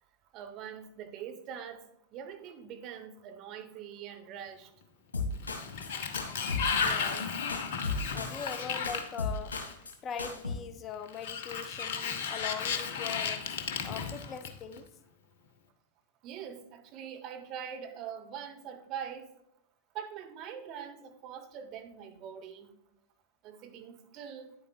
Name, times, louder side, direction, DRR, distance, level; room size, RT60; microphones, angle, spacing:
voice 1, 0.3-1.9 2.1-4.7 16.2-19.3 19.9-22.7 23.4-24.5, right 8 dB, 40° right, 6 dB, 1.0 m, -43 dB
sound 1, 5.1-5.9 6.1-7.2 7.5-8.6 8.8-9.9 10.2-10.5, left 3 dB, 70° left, 1.7 m, -35 dB
Sliding door, 5.3-9.9 11.1-14.8, left 6 dB, 55° left, 0.8 m, -34 dB
voice 2, 6.7-7.3 8.1-9.5 10.0-13.5 13.8-14.8, left 7 dB, 30° left, 11 dB, 0.5 m, -41 dB
9.6 x 8.1 x 2.3 m, 0.77 s
figure-of-eight pair, 90°, 0 cm